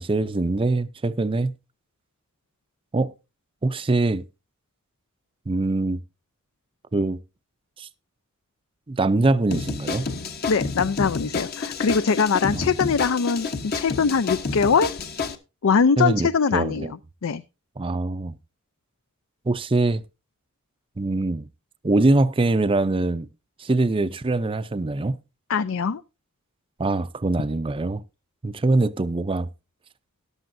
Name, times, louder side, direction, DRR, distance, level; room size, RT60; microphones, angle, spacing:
voice 1, 0.0-1.5 2.9-3.1 3.6-4.2 5.5-6.0 6.9-7.2 7.8-7.9 8.9-10.1 12.5-12.7 16.0-16.9 17.8-18.3 19.5-20.0 21.0-21.5 21.8-23.3 23.6-25.2 26.8-28.0 28.4-29.5, right 2 dB, 25° right, 0.5 m, -23 dB
sound 1, 9.5-15.4, left 4 dB, 45° left, 1.1 m, -30 dB
voice 2, 10.5-14.9 15.6-16.9 17.2-17.4 25.5-26.0, left 5 dB, 65° left, 0.5 m, -22 dB
13.5 x 11.0 x 2.6 m
head